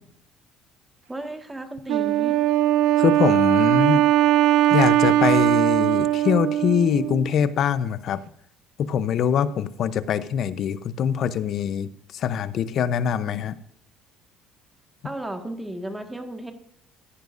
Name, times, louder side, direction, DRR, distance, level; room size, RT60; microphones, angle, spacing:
voice 1, 1.1-2.4 15.0-16.5, right 1 dB, 10° right, 6 dB, 1.7 m, -34 dB
Wind instrument woodwind instrument, 1.9-7.3, right 12 dB, 80° right, 0.4 m, -20 dB
voice 2, 3.0-4.0 4.7-8.2 8.8-13.5, left 8 dB, 60° left, 14 dB, 0.7 m, -23 dB
14.5 x 10.5 x 2.6 m, 0.69 s
cardioid pair, 105°, 0 cm